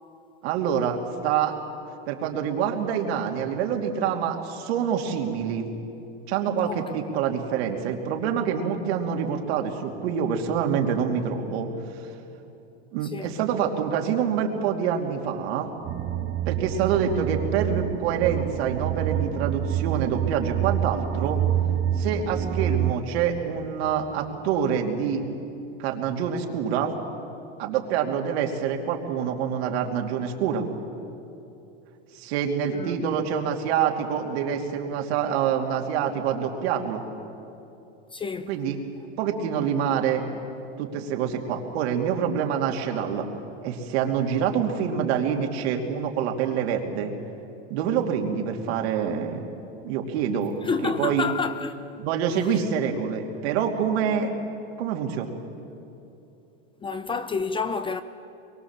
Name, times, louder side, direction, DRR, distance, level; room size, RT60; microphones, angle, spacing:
voice 1, 0.4-1.0 1.2-1.5 2.1-5.7 6.3-12.1 12.9-15.7 16.5-21.4 22.0-25.2 25.8-26.9 27.6-30.6 32.1-37.0 38.5-38.8 39.2-40.2 40.8-43.2 43.6-47.1 47.7-49.4 49.8-50.5 50.8-51.3 52.0-54.3 54.8-55.3, right 7 dB, 70° right, 2.8 m, -26 dB
sound 1, 15.8-22.9, right 10 dB, 35° right, 1.2 m, -27 dB
voice 2, 32.7-33.2 38.1-38.6 50.6-51.8 56.8-58.0, left 5 dB, 15° left, 0.6 m, -29 dB
24.0 x 23.0 x 7.4 m
supercardioid pair, 135°, 33 cm